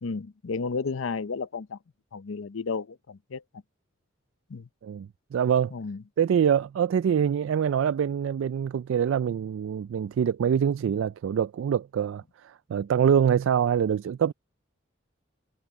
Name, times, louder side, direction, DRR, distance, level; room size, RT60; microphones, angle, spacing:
voice 1, 0.0-1.8 2.1-3.4 4.5-4.7 5.7-6.0, left 4 dB, 80° left, 0.6 m, -32 dB
voice 2, 4.8-5.7 6.2-14.3, right 8 dB, 75° right, 0.3 m, -25 dB
head